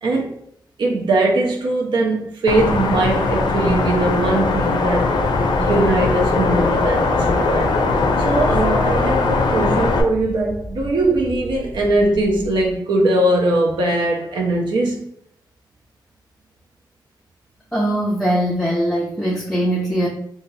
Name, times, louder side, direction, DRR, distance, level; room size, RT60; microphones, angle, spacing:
voice 1, 0.0-0.4 0.8-5.1 5.6-7.8 8.2-15.0, right 2 dB, 80° right, 0.6 m, -20 dB
sound 1, 2.5-10.0, left 3 dB, 70° left, 0.4 m, -19 dB
sound 2, 4.9-12.7, equal, 35° right, 0.6 m, -33 dB
voice 2, 17.7-20.1, right 1 dB, 5° left, 0.4 m, -21 dB
2.7 x 2.4 x 3.1 m
wide cardioid pair, 145°, 8 cm